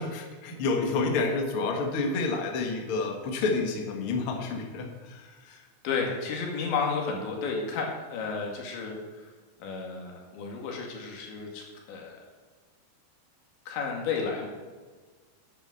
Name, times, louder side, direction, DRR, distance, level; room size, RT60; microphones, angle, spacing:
voice 1, 0.0-5.6, left 3 dB, 70° left, 2 dB, 1.3 m, -29 dB
voice 2, 5.8-9.3 9.6-12.2 13.7-14.5, left 5 dB, 85° left, 0 dB, 4.5 m, -32 dB
10.5 x 8.7 x 7.7 m, 1.4 s
omnidirectional pair, 5.1 m